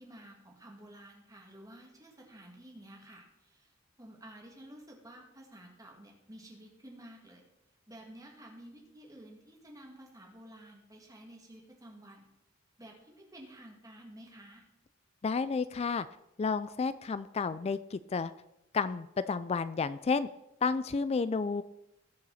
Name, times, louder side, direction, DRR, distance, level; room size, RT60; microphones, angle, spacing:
voice 1, 0.0-7.4 7.9-12.3 12.8-14.6, right 1 dB, 20° right, 0 dB, 2.4 m, -52 dB
voice 2, 15.2-16.1 16.4-18.3 18.7-20.3 20.6-21.6, left 5 dB, 30° left, 14 dB, 0.3 m, -31 dB
19.5 x 6.8 x 4.2 m, 0.86 s
head